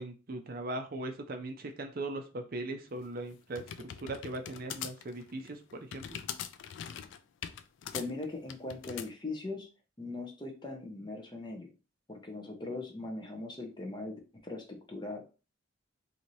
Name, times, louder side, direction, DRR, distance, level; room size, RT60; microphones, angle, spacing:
voice 1, 0.0-3.6 4.0-6.2, right 2 dB, 45° right, 5 dB, 0.5 m, -39 dB
sound 1, 3.0-9.1, left 9 dB, 60° left, 0.3 m, -42 dB
voice 2, 7.9-9.7 10.0-11.7 12.1-15.2, left 2 dB, 20° left, 2 dB, 0.7 m, -40 dB
4.0 x 2.7 x 3.1 m, 0.32 s
head